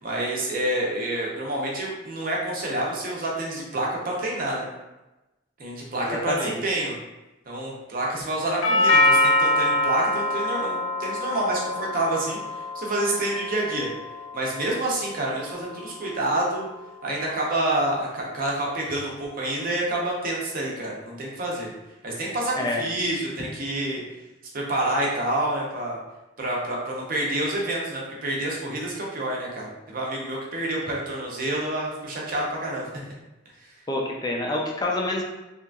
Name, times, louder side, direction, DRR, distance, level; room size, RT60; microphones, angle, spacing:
voice 1, 0.0-4.7 5.6-6.9 7.5-13.9 14.3-16.7 17.0-21.7 22.0-24.0 24.5-26.0 26.4-32.9, right 1 dB, 45° right, -3 dB, 0.7 m, -28 dB
voice 2, 6.0-6.6 22.5-22.8 33.9-35.2, left 2 dB, 20° left, -1 dB, 0.4 m, -27 dB
Doorbell, 8.6-16.7, left 1 dB, 85° left, 0.4 m, -25 dB
2.8 x 2.4 x 2.3 m, 1.0 s
head